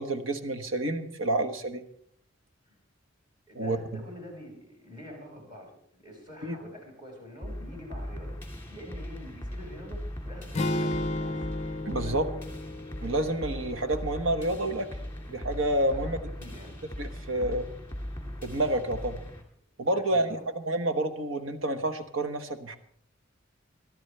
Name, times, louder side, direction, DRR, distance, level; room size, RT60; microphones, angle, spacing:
voice 1, 0.0-1.8 3.5-4.0 6.4-6.5 11.8-12.2 13.0-14.9 15.3-16.2 17.0-17.6 18.4-19.2 19.8-20.4 20.7-22.8, right 1 dB, 90° right, 8 dB, 1.3 m, -29 dB
voice 2, 3.5-11.5 12.0-12.2 15.9-16.7 17.4-17.5 20.1-20.5, left 1 dB, 25° right, 0 dB, 5.3 m, -46 dB
sound 1, 7.4-19.4, equal, 10° left, 2.2 m, -39 dB
sound 2, 10.6-14.7, left 2 dB, 35° left, 0.5 m, -34 dB
23.5 x 11.5 x 3.3 m, 0.65 s
head